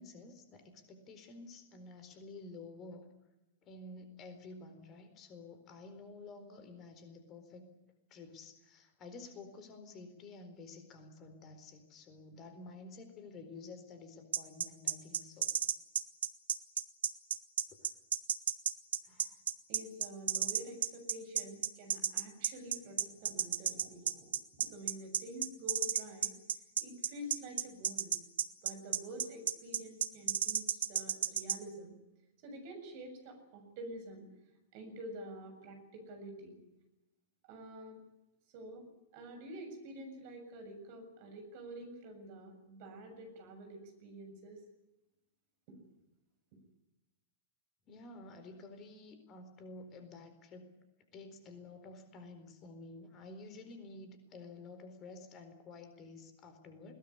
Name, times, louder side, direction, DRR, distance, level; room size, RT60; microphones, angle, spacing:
voice 1, 0.0-3.1 3.6-7.7 8.1-15.5 17.1-17.2 17.7-17.8 19.0-19.4 47.9-50.7 51.1-56.9, left 3 dB, 30° left, 8 dB, 4.3 m, -51 dB
sound 1, 14.3-31.6, right 9 dB, 65° right, 1.2 m, -32 dB
voice 2, 19.7-26.3 26.8-28.1 28.6-31.9 32.4-34.3 34.7-36.6 37.4-38.0 38.5-38.9 39.1-44.6 45.7-45.8, right 1 dB, 45° right, 5 dB, 7.1 m, -48 dB
21.5 x 19.5 x 9.9 m, 0.97 s
figure-of-eight pair, 95°, 0 cm